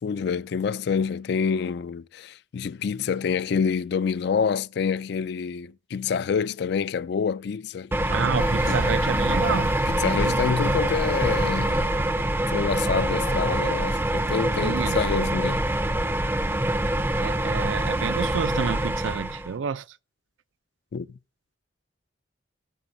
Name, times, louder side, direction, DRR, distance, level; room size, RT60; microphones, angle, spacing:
voice 1, 0.0-7.9 8.7-8.8 9.9-11.9 12.5-15.7 20.9-21.2, left 6 dB, 55° left, 0.3 m, -27 dB
sound 1, 7.9-19.5, right 1 dB, 10° right, 0.5 m, -25 dB
voice 2, 8.1-10.4 14.6-15.0 17.2-19.8, right 6 dB, 75° right, 0.4 m, -29 dB
sound 2, 8.4-13.7, left 4 dB, 75° left, 1.5 m, -40 dB
14.0 x 6.9 x 2.6 m
head